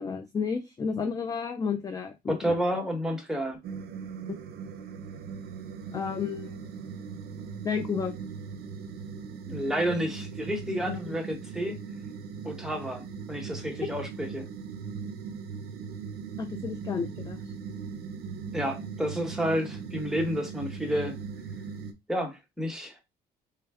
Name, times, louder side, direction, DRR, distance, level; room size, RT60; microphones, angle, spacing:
voice 1, 0.0-2.5 5.9-6.6 7.6-8.2 10.9-11.0 16.4-17.4, left 5 dB, 20° left, 0.4 m, -31 dB
voice 2, 2.3-3.6 9.5-11.9 12.4-14.4 18.5-21.2 22.1-23.0, equal, 5° right, 1.0 m, -30 dB
sound 1, 3.6-21.9, right 5 dB, 70° right, 0.6 m, -39 dB
3.3 x 2.1 x 3.4 m
cardioid pair, 110°, 17 cm